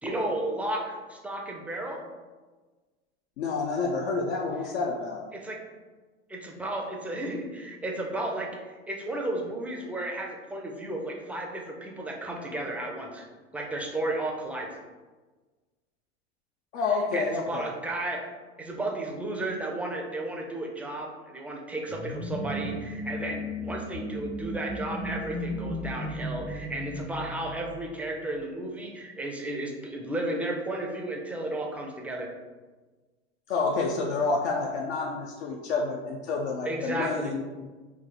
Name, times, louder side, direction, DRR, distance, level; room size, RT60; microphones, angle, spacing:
voice 1, 0.0-2.0 5.3-5.6 6.3-13.3 13.5-14.7 17.1-18.3 18.6-32.3 36.6-37.3, right 1 dB, 5° right, 1 dB, 0.3 m, -33 dB
voice 2, 3.4-5.2 16.7-17.7 33.5-37.4, left 4 dB, 75° left, -1 dB, 0.6 m, -29 dB
sound 1, 21.9-28.3, equal, 35° left, 0.7 m, -35 dB
3.3 x 2.2 x 3.8 m, 1.3 s
hypercardioid pair, 110°, 33 cm